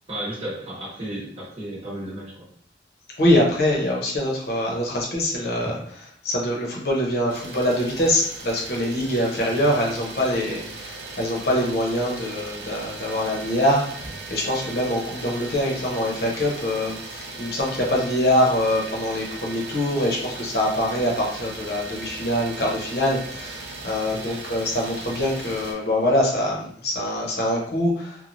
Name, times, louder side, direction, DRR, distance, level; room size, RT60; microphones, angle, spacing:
voice 1, 0.1-2.5 24.1-24.4, right 1 dB, 35° right, -6 dB, 0.8 m, -33 dB
voice 2, 3.2-28.2, left 1 dB, 60° left, -2 dB, 0.8 m, -24 dB
Idling, 7.3-25.7, right 3 dB, 70° right, 0.5 m, -38 dB
3.1 x 2.1 x 2.5 m, 0.63 s
head